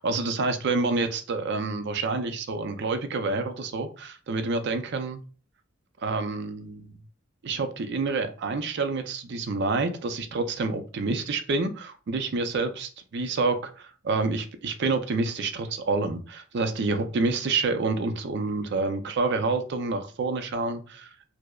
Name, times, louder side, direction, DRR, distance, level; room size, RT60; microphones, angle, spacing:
voice 1, 0.0-5.2 6.0-6.9 7.4-21.1, right 3 dB, 60° right, 0.4 m, -28 dB
4.7 x 2.0 x 2.3 m
head